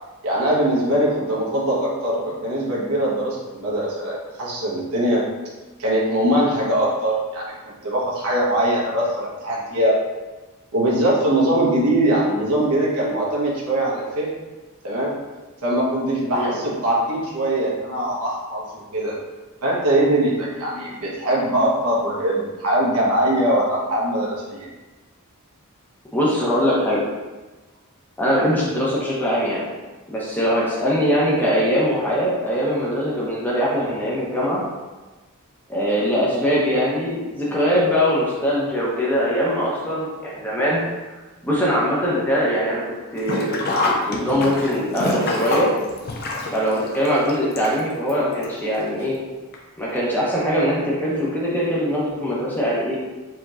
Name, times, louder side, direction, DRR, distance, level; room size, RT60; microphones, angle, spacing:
voice 1, 0.2-5.2 5.8-10.0 10.7-14.3 14.8-15.1 15.6-19.1 19.6-24.7, right 1 dB, 90° right, -5 dB, 1.1 m, -21 dB
voice 2, 26.1-27.1 28.2-29.7 30.1-34.6 35.7-40.8 41.4-42.8 43.1-45.7 46.5-49.1 49.8-53.0, equal, 10° left, -6 dB, 0.7 m, -22 dB
Sink (filling or washing), 43.2-48.1 48.4-48.5 49.5-49.6 50.0-50.1, left 2 dB, 45° left, 0.5 m, -26 dB
4.6 x 2.9 x 2.4 m, 1.2 s
head